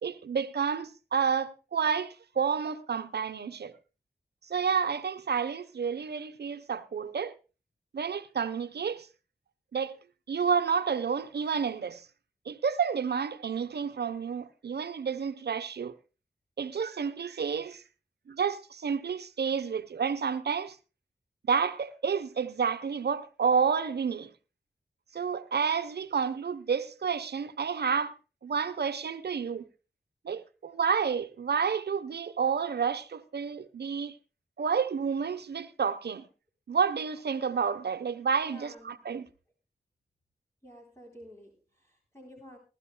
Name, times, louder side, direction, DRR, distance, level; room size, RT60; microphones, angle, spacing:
voice 1, 0.0-3.7 4.5-7.3 7.9-9.1 9.7-10.0 10.3-12.0 12.5-16.0 16.6-17.8 18.3-20.8 21.4-24.3 25.1-28.1 28.4-29.7 30.2-34.2 34.6-36.3 36.7-38.7 39.0-39.3, right 6 dB, 85° right, 1.1 m, -30 dB
voice 2, 38.4-39.0 40.6-42.6, equal, 15° left, 3.9 m, -51 dB
21.5 x 12.5 x 2.3 m
cardioid pair, 55°, 17 cm